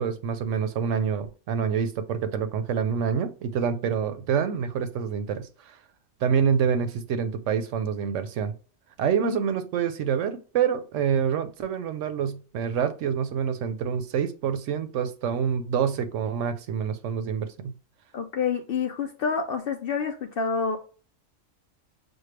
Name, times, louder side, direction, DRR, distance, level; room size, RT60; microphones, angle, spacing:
voice 1, 0.0-5.8 6.2-8.5 9.0-17.7, right 7 dB, 75° right, 0.9 m, -27 dB
voice 2, 18.1-20.8, left 5 dB, 65° left, 0.6 m, -28 dB
6.2 x 2.2 x 3.2 m
omnidirectional pair, 1.4 m